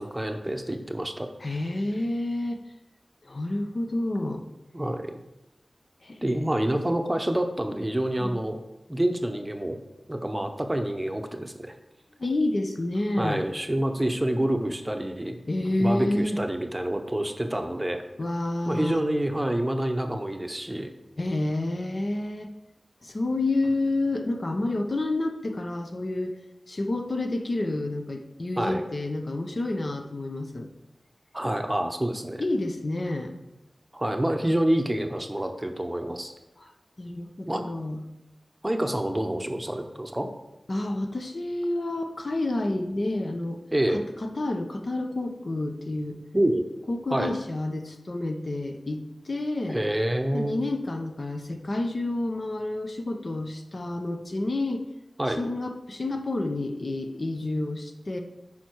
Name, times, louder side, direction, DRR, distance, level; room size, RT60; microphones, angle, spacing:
voice 1, 0.0-1.3 4.7-5.2 6.2-8.6 8.9-9.8 10.1-11.7 13.2-15.4 15.8-18.0 18.7-20.9 28.6-28.8 31.3-32.4 33.9-36.3 37.5-37.7 38.6-40.3 43.7-44.0 46.3-46.7 47.1-47.3 49.7-50.6 55.2-55.4, right 1 dB, 15° right, 5 dB, 0.8 m, -27 dB
voice 2, 1.4-2.6 3.2-4.5 6.0-6.3 8.2-8.4 12.2-13.5 15.5-16.4 18.2-19.0 21.2-22.5 23.0-26.4 26.7-30.7 32.4-33.4 36.6-36.7 37.0-38.0 40.7-43.6 43.9-46.2 46.9-49.8 50.3-54.9 55.3-58.2, left 2 dB, 50° left, 5 dB, 0.8 m, -29 dB
9.1 x 5.8 x 4.6 m, 0.94 s
wide cardioid pair, 85°, 0 cm